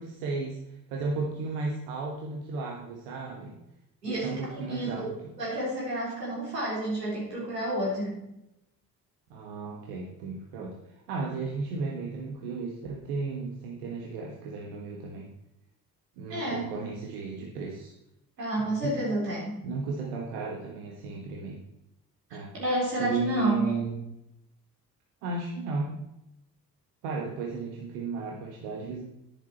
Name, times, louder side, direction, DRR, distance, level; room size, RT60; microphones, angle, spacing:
voice 1, 0.0-3.6 4.0-5.3 9.3-15.3 16.2-17.9 18.6-19.0 19.6-21.6 22.3-22.5 23.0-23.9 25.2-26.0 27.0-29.0, right 4 dB, 65° right, 0 dB, 1.6 m, -34 dB
voice 2, 4.0-8.2 16.3-16.6 18.4-19.6 22.5-23.7, right 1 dB, 85° right, -5 dB, 3.9 m, -30 dB
10.5 x 10.0 x 4.3 m, 0.86 s
figure-of-eight pair, 45°, 48 cm